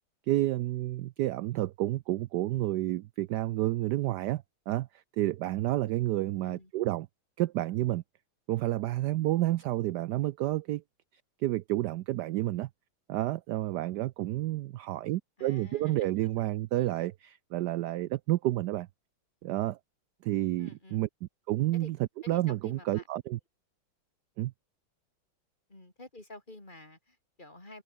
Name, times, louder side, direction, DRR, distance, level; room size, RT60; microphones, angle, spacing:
voice 1, 0.3-4.9 5.2-7.1 7.4-8.0 8.5-10.8 11.4-12.7 13.1-18.9 19.4-19.8 20.2-22.0 22.3-23.4 24.4-24.5, right 15 dB, 75° right, 0.9 m, -30 dB
voice 2, 15.4-16.1 16.4-16.5 20.6-21.1 21.7-21.9 22.2-23.1 24.4-24.5 25.7-27.8, left 2 dB, 20° left, 5.0 m, -49 dB
omnidirectional pair, 2.3 m